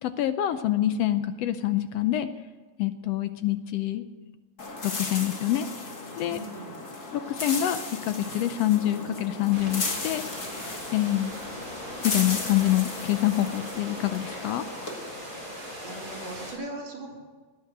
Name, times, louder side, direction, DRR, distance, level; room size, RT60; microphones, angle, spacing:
voice 1, 0.0-2.3 2.8-4.0 4.8-5.7 6.2-6.4 7.1-10.2 10.9-11.3 12.0-14.6, left 13 dB, 75° left, 11 dB, 1.5 m, -26 dB
sound 1, 4.6-14.9, left 3 dB, 35° left, 2.5 m, -36 dB
voice 2, 6.3-6.8 15.5-17.1, right 2 dB, 60° right, -3 dB, 4.4 m, -39 dB
sound 2, 9.5-16.5, equal, 25° right, 5.4 m, -39 dB
17.5 x 10.5 x 8.0 m, 1.4 s
omnidirectional pair, 3.3 m